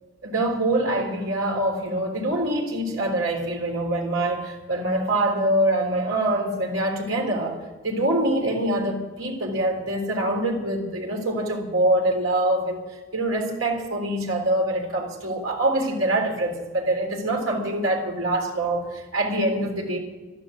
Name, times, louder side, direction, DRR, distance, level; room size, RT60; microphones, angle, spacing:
voice 1, 0.2-7.6 7.8-12.9 13.1-20.0, right 1 dB, 80° right, 0 dB, 3.6 m, -24 dB
13.0 x 11.5 x 7.4 m, 1.3 s
head